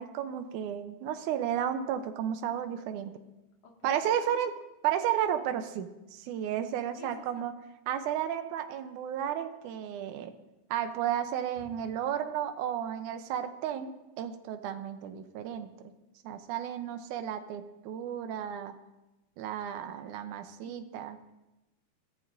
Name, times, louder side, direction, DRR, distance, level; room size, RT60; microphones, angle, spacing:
voice 1, 0.0-3.1 3.8-4.5 4.8-7.5 7.9-10.3 10.7-15.7 16.2-18.7 19.4-21.2, right 10 dB, 85° right, 8 dB, 2.3 m, -33 dB
voice 2, 3.6-4.4 7.0-7.5 11.6-11.8 20.6-20.8, left 5 dB, 60° left, 0 dB, 3.0 m, -52 dB
24.5 x 14.0 x 2.6 m, 0.99 s
omnidirectional pair, 3.4 m